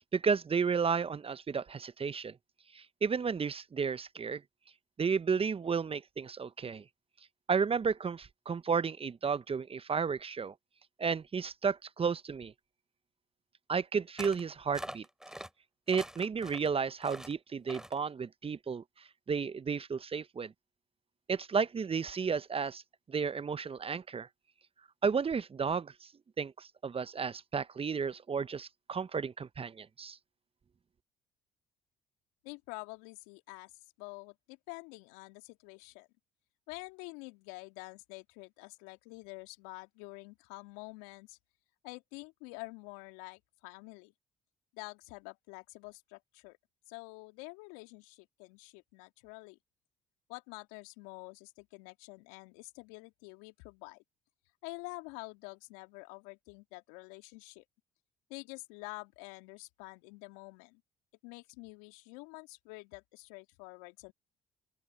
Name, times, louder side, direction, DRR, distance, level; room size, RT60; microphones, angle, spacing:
voice 1, 0.1-2.4 2.7-4.4 5.0-6.8 7.5-10.5 11.0-12.5 13.7-15.0 15.9-18.8 19.3-20.5 21.3-22.8 23.1-24.3 25.0-26.1 26.4-30.2, right 5 dB, 30° right, 0.9 m, -32 dB
sound 1, 14.2-14.4 14.7-15.5 15.9-16.7 17.0-17.3 17.7-18.0, equal, 5° right, 4.5 m, -44 dB
voice 2, 32.4-33.7 34.0-36.1 36.7-41.4 41.8-44.1 44.7-46.6 46.9-49.6 50.3-54.0 54.6-57.6 58.3-60.8 61.2-64.1, left 28 dB, 75° left, 2.9 m, -48 dB
open air
hypercardioid pair, 55°, 18 cm